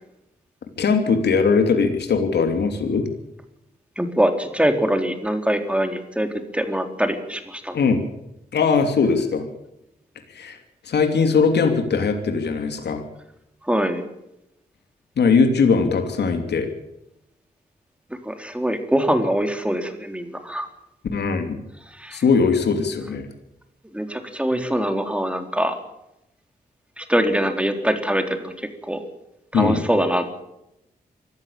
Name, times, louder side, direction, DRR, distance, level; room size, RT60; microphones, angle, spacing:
voice 1, 0.8-3.1 7.7-8.0 8.5-9.5 10.3-10.6 10.8-13.1 15.2-16.7 21.1-21.6 22.1-23.3 29.5-29.8, left 5 dB, 85° left, 5 dB, 2.9 m, -20 dB
voice 2, 4.0-6.3 6.5-7.8 13.7-14.0 18.2-20.7 22.0-22.2 23.9-25.8 27.0-28.5 28.8-29.1 29.5-30.4, equal, 5° right, 6 dB, 3.9 m, -23 dB
24.0 x 14.0 x 8.7 m, 0.85 s
cardioid pair, 70°, 17 cm